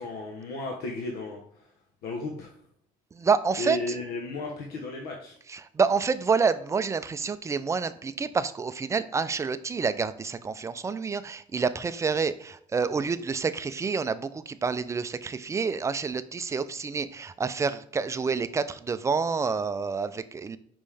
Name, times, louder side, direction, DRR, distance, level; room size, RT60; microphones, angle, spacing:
voice 1, 0.0-1.7 2.0-2.6 3.6-5.4, left 2 dB, 80° left, 1 dB, 1.0 m, -34 dB
voice 2, 3.1-3.8 5.5-20.6, right 5 dB, 20° right, 12 dB, 0.4 m, -28 dB
5.5 x 5.2 x 3.3 m, 0.68 s
cardioid pair, 135°, 16 cm